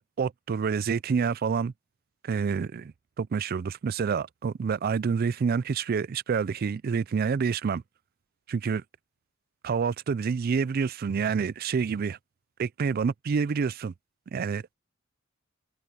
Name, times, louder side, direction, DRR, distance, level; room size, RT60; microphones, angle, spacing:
voice 1, 0.0-1.7 2.2-7.8 8.5-8.8 9.6-12.2 12.6-13.9 14.3-14.6, right 6 dB, 45° right, 0.4 m, -28 dB
head